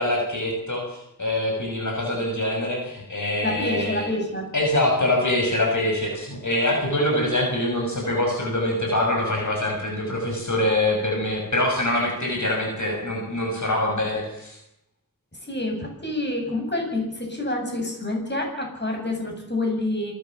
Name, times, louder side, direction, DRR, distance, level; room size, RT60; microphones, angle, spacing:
voice 1, 0.0-4.1 4.5-14.6, left 1 dB, 60° left, 1 dB, 6.2 m, -24 dB
voice 2, 3.4-4.5 15.4-20.1, left 1 dB, 30° left, 2 dB, 7.9 m, -27 dB
27.0 x 14.0 x 7.3 m, 0.81 s
wide cardioid pair, 60°, 34 cm